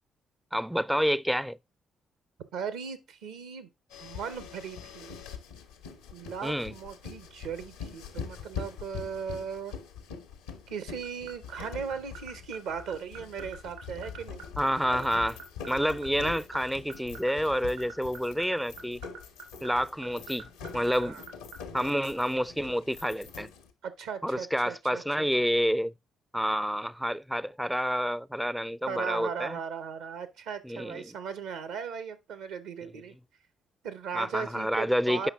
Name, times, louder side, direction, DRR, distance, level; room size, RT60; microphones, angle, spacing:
voice 1, 0.5-1.6 6.4-6.7 14.6-15.4 15.7-19.0 19.6-21.2 21.7-23.5 24.2-25.9 26.3-29.6 30.6-31.2 34.1-35.3, equal, ahead, 0.4 m, -29 dB
voice 2, 2.5-3.7 4.0-5.2 6.1-9.7 10.7-14.4 21.1-21.2 23.8-25.3 28.9-33.1 33.8-35.3, right 6 dB, 75° right, 0.8 m, -37 dB
sound 1, 3.9-23.7, left 6 dB, 85° left, 1.0 m, -44 dB
sound 2, 11.0-21.6, right 7 dB, 90° right, 2.8 m, -43 dB
8.0 x 5.5 x 3.6 m
hypercardioid pair, 45°, 0 cm